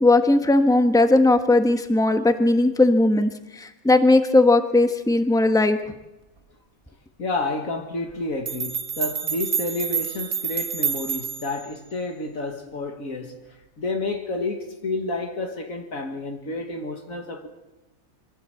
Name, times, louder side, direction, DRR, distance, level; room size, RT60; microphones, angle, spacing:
voice 1, 0.0-5.8, left 2 dB, 5° left, 1.1 m, -18 dB
voice 2, 7.2-13.4 13.8-17.5, left 2 dB, 75° left, 2.2 m, -30 dB
sound 1, 8.1-8.2 8.5-11.6, right 6 dB, 45° right, 1.3 m, -28 dB
24.5 x 16.0 x 7.8 m
omnidirectional pair, 1.4 m